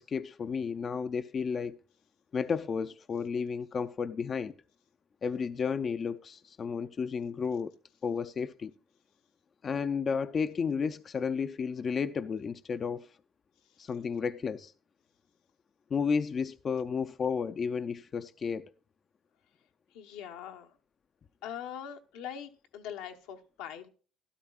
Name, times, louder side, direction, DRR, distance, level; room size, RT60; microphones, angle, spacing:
voice 1, 0.0-1.8 2.3-4.5 5.2-7.7 8.0-8.7 9.6-13.1 13.8-14.7 15.9-18.7, left 6 dB, 40° left, 0.4 m, -32 dB
voice 2, 19.9-20.8 21.4-23.9, left 9 dB, 80° left, 1.0 m, -42 dB
12.5 x 12.5 x 2.4 m
supercardioid pair, 85°, 0 cm